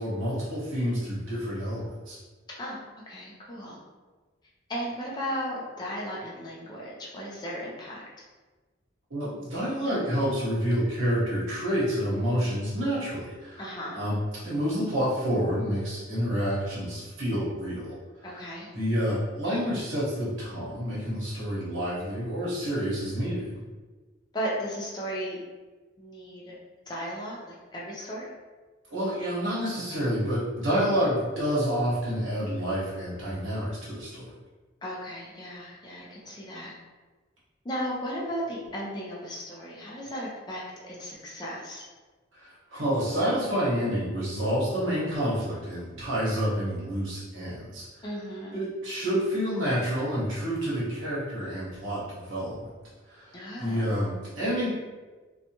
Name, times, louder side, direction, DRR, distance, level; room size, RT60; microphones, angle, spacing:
voice 1, 0.0-2.2 9.1-18.0 18.7-23.6 28.9-34.3 42.3-47.9 48.5-52.7 53.1-54.7, equal, 85° right, -7 dB, 1.1 m, -28 dB
voice 2, 2.6-3.8 4.7-8.0 13.6-14.0 18.2-18.7 24.3-25.4 26.0-26.6 26.9-28.3 34.8-36.7 37.6-41.8 48.0-48.6 53.3-53.9, equal, 20° left, -5 dB, 0.5 m, -35 dB
2.7 x 2.2 x 2.9 m, 1.3 s
head